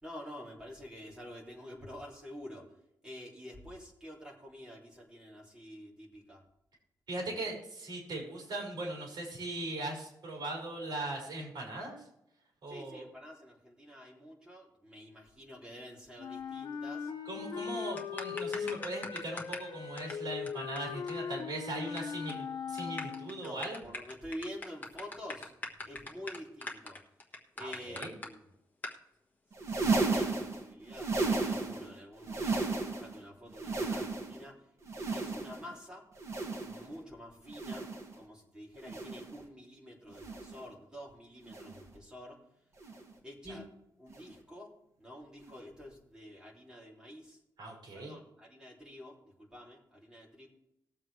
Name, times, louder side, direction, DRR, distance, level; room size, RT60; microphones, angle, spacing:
voice 1, 0.0-2.6 3.0-6.4 12.7-17.1 23.3-25.5 25.8-27.0 27.6-28.4 29.7-34.5 35.1-36.0 36.6-37.8 38.2-42.4 43.2-43.7 44.0-44.7 45.0-47.4 47.9-50.5, equal, 10° right, -3 dB, 3.0 m, -48 dB
voice 2, 7.1-12.0 12.6-13.0 17.3-23.8 27.6-28.1 43.4-43.6 47.6-48.2, right 2 dB, 65° right, -2 dB, 5.2 m, -39 dB
Wind instrument woodwind instrument, 16.2-23.5, left 6 dB, 75° left, 1.0 m, -39 dB
sound 1, 18.0-19.7 20.0-20.1 20.5-20.6 20.8-20.9 21.1-21.2 21.4-22.0 22.3-22.4 22.8-28.3 28.8-29.0, left 2 dB, 25° left, 1.5 m, -41 dB
sound 2, 29.5-31.9 32.2-33.2 33.5-34.5 34.9-35.7 36.2-36.9 37.5-38.1 38.8-39.4 40.1-40.7 41.5-41.9 42.8-43.1 44.1-44.3 45.5-45.6, right 3 dB, 40° right, 2.0 m, -34 dB
20.0 x 7.4 x 3.3 m, 0.81 s
wide cardioid pair, 170°, 8 cm